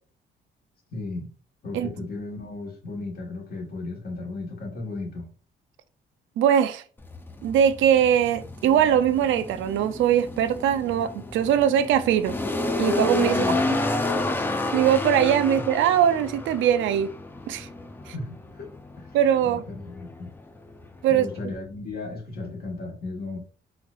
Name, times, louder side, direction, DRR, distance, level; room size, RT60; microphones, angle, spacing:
voice 1, 0.9-1.3 1.6-5.3 13.2-13.6 18.0-19.2 19.4-20.3 21.1-23.4, left 3 dB, 55° left, 1.3 m, -35 dB
voice 2, 6.4-6.8 7.4-12.4 12.8-13.5 14.7-17.1 17.5-17.7 19.1-19.6 21.0-21.3, right 9 dB, 85° right, 0.4 m, -21 dB
sound 1, 7.0-21.4, left 2 dB, 10° left, 0.4 m, -30 dB
4.1 x 2.5 x 2.4 m
cardioid pair, 100°, 19 cm